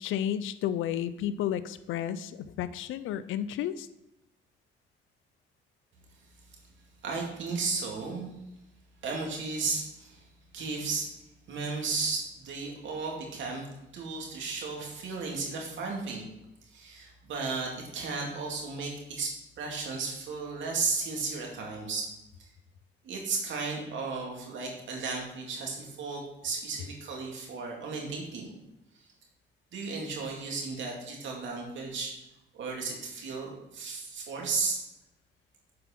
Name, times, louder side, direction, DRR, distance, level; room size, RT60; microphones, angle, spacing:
voice 1, 0.0-3.9, left 10 dB, 85° left, 14 dB, 0.5 m, -32 dB
voice 2, 7.0-8.3 9.0-10.2 10.5-11.1 11.5-13.7 13.9-16.3 16.7-22.1 22.4-22.5 23.0-28.5 29.7-32.1 32.5-34.8, right 4 dB, 70° right, 0 dB, 2.4 m, -34 dB
7.7 x 4.7 x 5.9 m, 0.93 s
cardioid pair, 90°, 20 cm